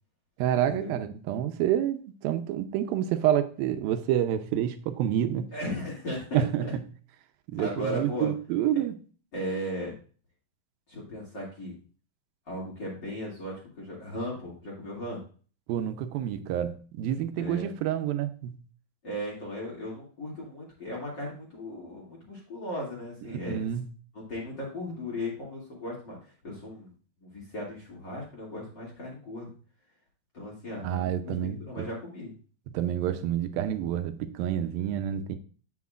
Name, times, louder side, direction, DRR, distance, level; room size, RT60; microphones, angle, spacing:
voice 1, 0.4-5.5 6.3-6.7 7.5-9.0 15.7-18.6 23.5-23.8 30.8-31.9 32.7-35.4, right 11 dB, 80° right, 8 dB, 2.5 m, -28 dB
voice 2, 5.5-6.7 7.6-8.3 8.7-8.8 9.3-9.9 10.9-11.7 12.5-15.2 17.4-17.7 19.0-23.7 24.1-26.9 27.2-29.5 30.3-32.3, left 1 dB, 35° left, -4 dB, 2.6 m, -36 dB
9.5 x 7.8 x 2.4 m, 0.39 s
omnidirectional pair, 4.3 m